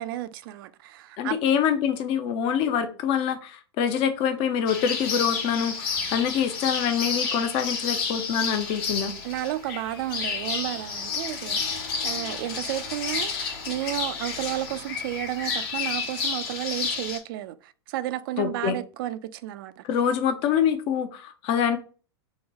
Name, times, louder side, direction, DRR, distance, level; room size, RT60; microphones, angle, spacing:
voice 1, 0.0-1.4 9.2-19.8, right 14 dB, 50° right, 0.4 m, -32 dB
voice 2, 1.2-9.1 18.4-18.8 19.8-21.8, left 8 dB, 40° left, 0.6 m, -25 dB
sound 1, 4.7-17.2, left 5 dB, 55° left, 1.1 m, -31 dB
3.9 x 2.2 x 4.0 m
figure-of-eight pair, 95°, 15 cm